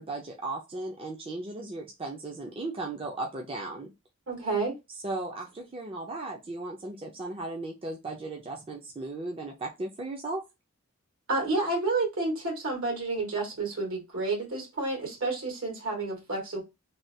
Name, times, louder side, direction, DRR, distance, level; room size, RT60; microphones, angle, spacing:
voice 1, 0.0-3.9 5.0-10.4, right 2 dB, 25° right, 0.5 m, -36 dB
voice 2, 4.3-4.7 11.3-16.6, right 3 dB, 75° right, 1.9 m, -30 dB
3.2 x 2.3 x 2.7 m
head